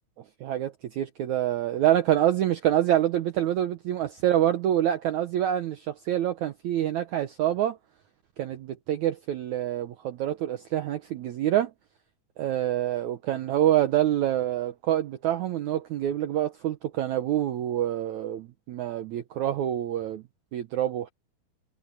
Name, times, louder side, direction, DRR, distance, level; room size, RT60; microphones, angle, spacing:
voice 1, 0.4-7.8 8.4-11.7 12.4-20.2 20.5-21.1, right 12 dB, 85° right, 1.6 m, -26 dB
omnidirectional pair, 4.6 m